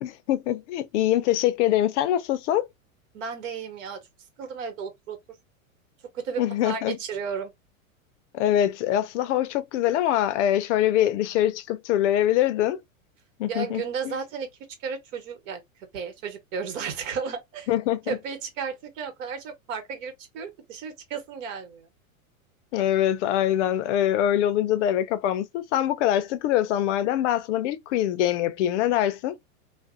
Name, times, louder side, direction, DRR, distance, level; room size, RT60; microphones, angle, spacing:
voice 1, 0.0-2.7 6.4-7.0 8.3-12.8 13.4-14.2 17.7-18.2 22.7-29.4, left 12 dB, 60° left, 0.5 m, -24 dB
voice 2, 3.1-4.0 4.4-5.2 6.1-7.5 13.5-14.5 14.8-15.6 15.9-17.7 18.1-21.9, right 6 dB, 65° right, 1.2 m, -33 dB
2.5 x 2.1 x 2.4 m
hypercardioid pair, 115°, 42 cm